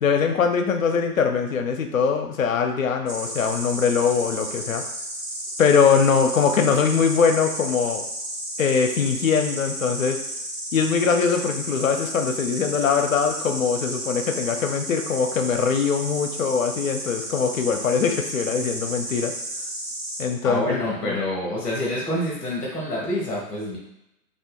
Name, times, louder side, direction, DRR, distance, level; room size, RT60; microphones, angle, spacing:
voice 1, 0.0-4.8 5.6-8.0 8.6-10.2 10.7-19.3 20.2-21.2, left 6 dB, 55° left, 5 dB, 0.5 m, -22 dB
Insect, 3.1-20.2, right 1 dB, 85° right, 1.2 m, -33 dB
voice 2, 20.4-23.8, left 1 dB, ahead, -6 dB, 0.5 m, -27 dB
2.7 x 2.5 x 3.5 m, 0.85 s
figure-of-eight pair, 120°, 49 cm